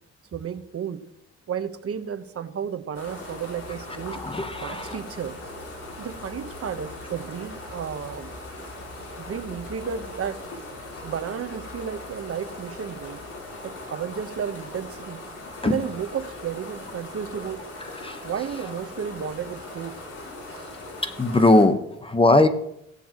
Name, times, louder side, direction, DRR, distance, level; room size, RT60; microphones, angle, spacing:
voice 1, 0.3-1.0 1.5-4.2 4.6-5.3 6.0-8.3 9.2-10.4 11.0-13.2 13.6-15.2 15.6-17.6 18.2-20.0 20.5-20.6, right 8 dB, 50° right, 9 dB, 1.1 m, -33 dB
sound 1, 2.9-21.7, left 2 dB, 50° left, 6.3 m, -39 dB
voice 2, 4.1-5.0 15.6-15.8 17.9-18.2 21.0-22.5, left 2 dB, 20° left, 9 dB, 1.1 m, -20 dB
16.5 x 13.0 x 3.0 m, 0.80 s
cardioid pair, 90°, 30 cm